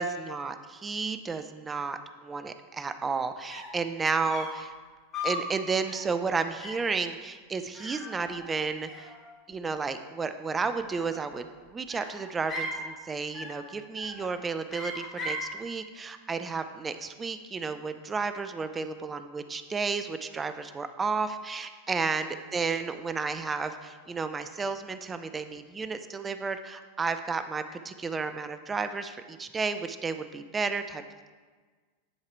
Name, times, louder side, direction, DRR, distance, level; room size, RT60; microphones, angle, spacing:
voice 1, 0.0-4.7 5.2-9.1 9.5-31.0, right 4 dB, 20° right, 10 dB, 0.5 m, -32 dB
sound 1, 3.2-3.3 3.5-3.8 4.3-4.7 5.1-5.5 5.9-6.2 6.6-6.9 7.7-8.6 8.9-9.6 10.8-11.4 11.9-12.8 13.3-13.7 14.0-14.3 14.7-15.5, left 1 dB, 30° left, 2.0 m, -38 dB
10.0 x 4.8 x 4.6 m, 1.4 s
hypercardioid pair, 90°, 0 cm